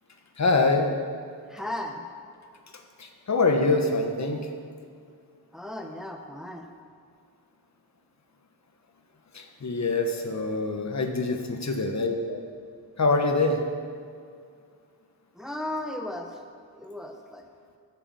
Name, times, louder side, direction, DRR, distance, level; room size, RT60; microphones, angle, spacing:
voice 1, 0.4-1.0 3.0-4.5 9.3-12.4 13.0-13.6, left 3 dB, 45° left, 4 dB, 1.2 m, -25 dB
voice 2, 1.5-2.1 5.5-6.7 15.3-16.4 16.7-17.5, left 1 dB, ahead, 3 dB, 1.1 m, -35 dB
9.7 x 7.8 x 7.4 m, 2.3 s
cardioid pair, 80°, 37 cm